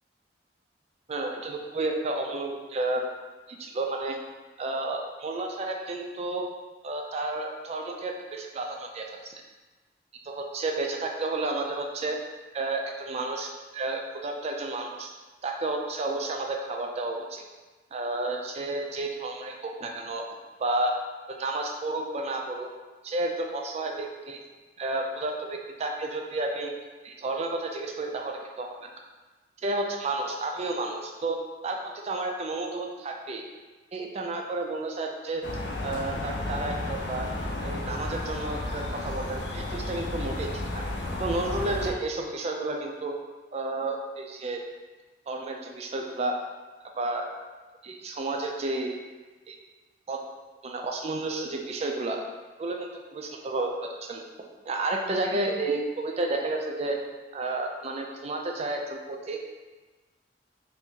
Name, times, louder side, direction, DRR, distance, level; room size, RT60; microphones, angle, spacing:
voice 1, 1.1-3.0 3.5-4.2 4.6-6.5 6.8-9.4 10.2-12.2 12.5-15.1 15.4-17.4 17.9-20.2 20.6-21.0 21.3-22.7 23.0-24.4 24.8-26.7 27.0-28.9 29.6-31.4 31.6-33.4 33.9-35.4 35.8-37.3 37.6-40.8 41.2-43.1 43.5-44.6 45.3-46.3 47.0-47.3 47.8-49.0 49.5-49.6 50.1-50.2 50.6-52.2 52.6-54.2 54.7-57.0 57.3-59.4, right 2 dB, 35° right, 2 dB, 0.3 m, -31 dB
sound 1, 35.4-41.9, left 1 dB, 70° left, 0.5 m, -33 dB
2.8 x 2.5 x 3.6 m, 1.3 s
head